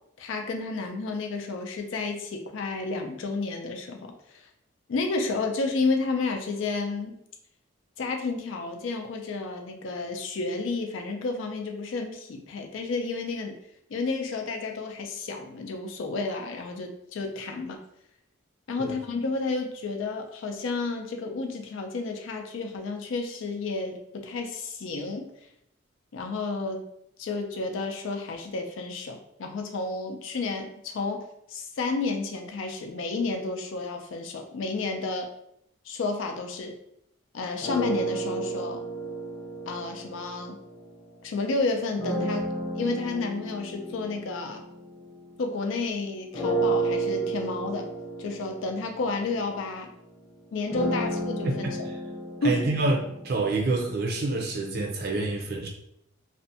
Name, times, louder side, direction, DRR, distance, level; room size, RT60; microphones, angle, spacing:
voice 1, 0.2-4.1 4.9-7.2 8.0-13.5 13.9-17.8 18.7-25.3 26.1-26.9 27.2-35.3 35.9-36.7 37.3-38.8 39.7-40.6 41.2-42.4 42.8-44.6 45.4-47.9 48.2-49.9 50.5-51.5 52.4-52.6, left 3 dB, 70° left, 4 dB, 0.4 m, -31 dB
sound 1, 37.6-41.2 42.0-45.8 46.3-54.3, right 2 dB, 20° left, 0.8 m, -32 dB
voice 2, 51.4-52.0 52.4-53.0 53.2-55.7, right 2 dB, 50° right, 0 dB, 0.5 m, -27 dB
2.5 x 2.1 x 2.6 m, 0.74 s
head